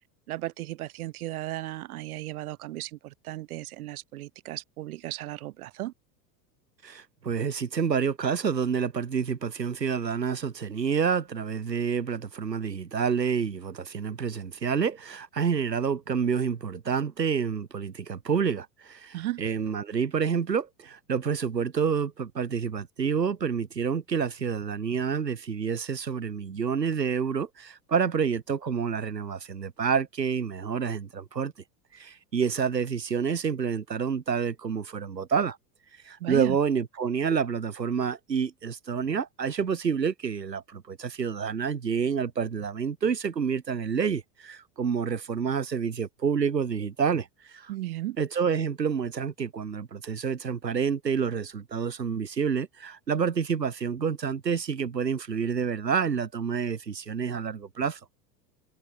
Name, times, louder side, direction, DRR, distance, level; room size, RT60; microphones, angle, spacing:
voice 1, 0.3-5.9 19.1-19.4 36.2-36.6 47.7-48.2, right 15 dB, 60° right, 1.4 m, -35 dB
voice 2, 6.8-31.5 31.9-35.6 36.0-47.7 48.2-58.0, right 6 dB, 80° right, 2.0 m, -28 dB
figure-of-eight pair, 80°, 49 cm